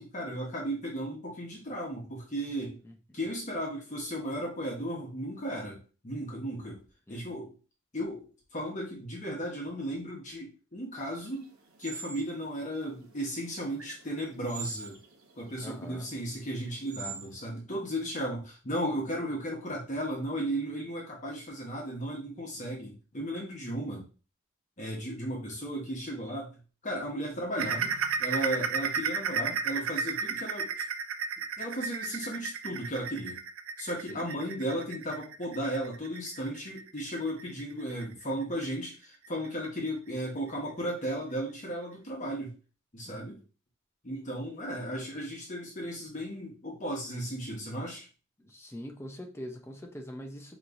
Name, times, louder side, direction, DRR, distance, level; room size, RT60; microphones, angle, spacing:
voice 1, 0.0-2.8 3.1-6.8 7.1-7.5 7.9-11.5 11.8-15.0 15.4-24.1 24.8-26.5 26.8-27.9 28.2-30.8 31.6-33.4 33.8-42.5 42.9-43.4 44.0-48.1, equal, 35° left, -3 dB, 1.1 m, -35 dB
voice 2, 2.9-3.2 7.1-7.4 15.6-16.1 34.1-34.3 43.1-43.2 48.4-50.6, equal, 10° left, 3 dB, 0.6 m, -43 dB
sound 1, 10.9-17.5, right 5 dB, 85° right, 0.9 m, -46 dB
sound 2, 27.6-38.8 39.2-39.5 39.9-40.0 40.5-40.6, right 6 dB, 70° right, 0.4 m, -33 dB
5.2 x 3.0 x 2.6 m, 0.35 s
head